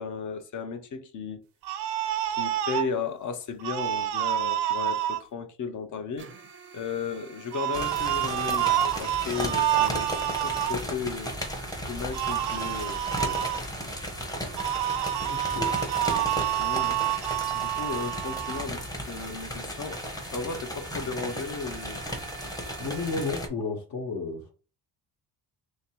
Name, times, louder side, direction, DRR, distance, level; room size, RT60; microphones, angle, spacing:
voice 1, 0.0-1.4 2.3-6.3 6.7-11.3 11.6-13.6 16.3-17.3 17.5-20.0 20.3-22.0 22.4-22.5, left 5 dB, 45° left, 0.7 m, -35 dB
sound 1, 1.6-2.9 3.6-5.2 7.5-10.7 12.1-13.6 14.6-18.7, right 12 dB, 75° right, 0.6 m, -28 dB
sound 2, 6.2-23.3, right 6 dB, 30° right, 0.5 m, -48 dB
sound 3, 7.7-23.5, equal, 10° left, 0.7 m, -35 dB
voice 2, 15.3-15.7 22.8-24.5, left 3 dB, 65° left, 1.2 m, -32 dB
3.3 x 2.9 x 4.4 m
cardioid pair, 145°, 40 cm